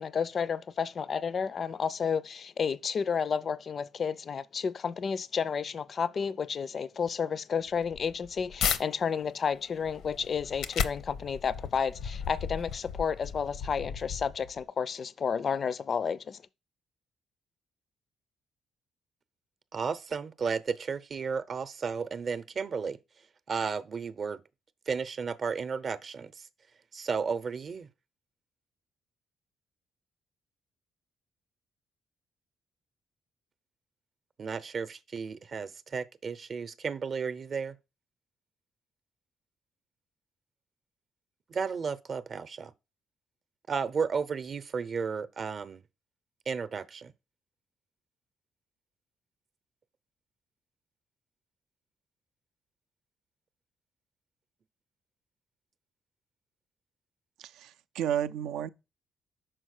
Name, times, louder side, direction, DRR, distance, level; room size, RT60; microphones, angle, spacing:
voice 1, 0.0-16.4, left 6 dB, 50° left, 0.4 m, -31 dB
sound 1, 7.7-8.8 9.3-14.6, left 7 dB, 80° left, 0.7 m, -35 dB
voice 2, 19.7-23.0 23.5-24.4 24.9-26.5 26.9-27.9 34.4-37.8 41.5-42.7 43.7-45.8 46.5-47.1, right 5 dB, 45° right, 0.6 m, -33 dB
voice 3, 57.4-58.7, right 10 dB, 85° right, 0.4 m, -32 dB
6.2 x 4.4 x 6.4 m
cardioid pair, 90°, 0 cm